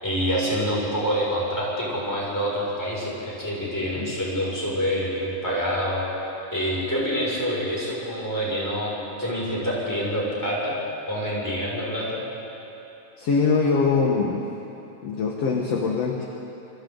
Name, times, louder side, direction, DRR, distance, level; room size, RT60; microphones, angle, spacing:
voice 1, 0.0-6.1 6.5-10.8 11.1-12.2, equal, 5° left, -6 dB, 6.0 m, -26 dB
voice 2, 13.2-14.5 15.0-16.3, left 4 dB, 55° left, 0 dB, 2.1 m, -23 dB
28.5 x 23.5 x 4.0 m, 3.0 s
omnidirectional pair, 3.8 m